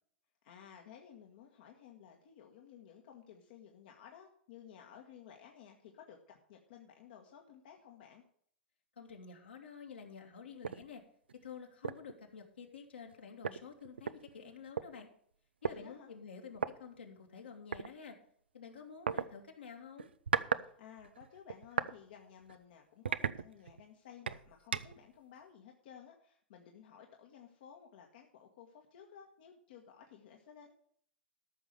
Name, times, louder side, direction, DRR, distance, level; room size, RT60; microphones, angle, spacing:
voice 1, 0.4-8.2 15.7-16.1 20.5-30.7, left 8 dB, 60° left, 2 dB, 1.5 m, -56 dB
voice 2, 9.0-11.0 11.4-15.1 15.6-18.2 18.5-20.1, left 6 dB, 75° left, 1 dB, 2.5 m, -50 dB
sound 1, 10.6-10.8 11.3-11.4 11.8-12.1 13.1-13.2 13.4-14.9 15.6-15.8 16.5-16.7 17.7-17.9 19.1-19.3 20.0-20.7 21.0-21.9 22.4-22.6 23.0-23.8 24.3-25.0, right 6 dB, 75° right, 0.5 m, -36 dB
13.5 x 6.2 x 6.8 m, 0.62 s
figure-of-eight pair, 95°, 6 cm